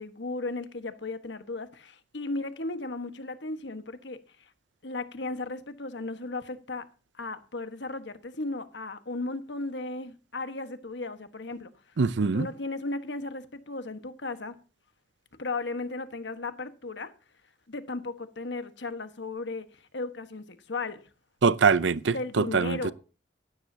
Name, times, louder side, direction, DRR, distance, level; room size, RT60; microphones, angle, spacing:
voice 1, 0.0-4.2 4.8-6.9 7.2-11.7 12.2-14.6 15.4-17.1 17.7-19.7 19.9-21.0 22.1-22.9, left 2 dB, 75° left, 1.4 m, -35 dB
voice 2, 12.0-12.5 21.4-22.9, right 5 dB, 80° right, 0.6 m, -23 dB
16.0 x 13.0 x 2.8 m
head